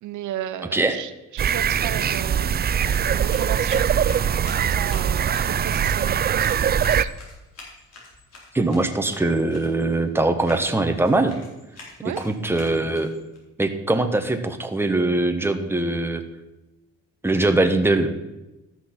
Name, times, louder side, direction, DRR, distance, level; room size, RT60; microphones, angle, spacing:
voice 1, 0.0-2.6 3.1-4.0 4.6-7.1 12.0-12.2, right 11 dB, 75° right, 11 dB, 0.7 m, -34 dB
sound 1, 1.4-7.0, right 8 dB, 35° right, 0.4 m, -22 dB
sound 2, 2.4-13.4, left 3 dB, 55° left, 4.1 m, -46 dB
voice 2, 8.5-11.4 12.2-13.1 13.6-16.2 17.2-18.1, right 2 dB, 10° right, 6 dB, 1.2 m, -22 dB
13.0 x 6.2 x 6.0 m, 0.99 s
cardioid pair, 90°, 30 cm